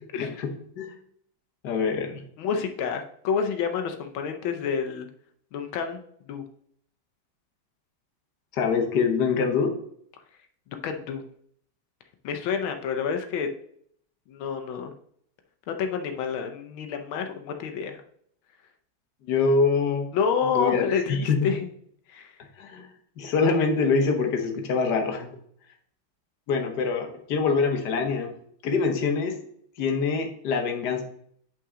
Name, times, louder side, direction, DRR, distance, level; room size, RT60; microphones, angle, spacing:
voice 1, 1.6-2.2 8.5-9.7 19.3-20.1 20.4-21.4 22.6-22.9 23.2-25.3 26.5-28.3 28.6-29.3 29.8-31.0, left 4 dB, 60° left, 4 dB, 1.7 m, -24 dB
voice 2, 2.4-5.1 5.5-6.0 6.3-6.4 10.8-11.2 12.2-13.5 14.3-14.9 15.7-18.0 20.1-21.7 22.1-22.3, left 6 dB, 90° left, 6 dB, 1.6 m, -28 dB
8.4 x 5.6 x 3.7 m, 0.65 s
omnidirectional pair, 2.1 m